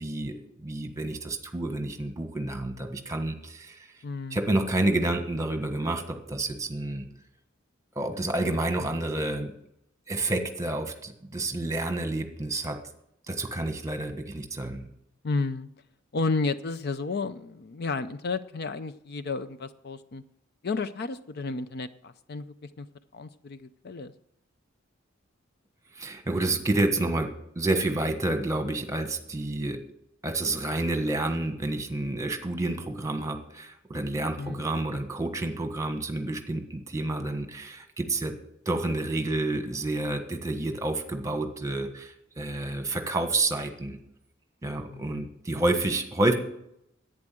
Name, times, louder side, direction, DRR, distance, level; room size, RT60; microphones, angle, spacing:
voice 1, 0.0-3.8 4.3-7.0 7.9-9.5 10.1-12.8 13.3-14.8 25.9-29.8 30.2-38.3 38.6-44.0 44.6-46.3, right 2 dB, 15° right, 6 dB, 1.4 m, -29 dB
voice 2, 4.0-4.4 15.2-15.7 16.1-20.2 20.6-22.9 23.1-24.1 34.4-34.6 44.9-45.2, left 3 dB, 55° left, 12 dB, 0.5 m, -32 dB
11.0 x 8.8 x 7.6 m, 0.76 s
head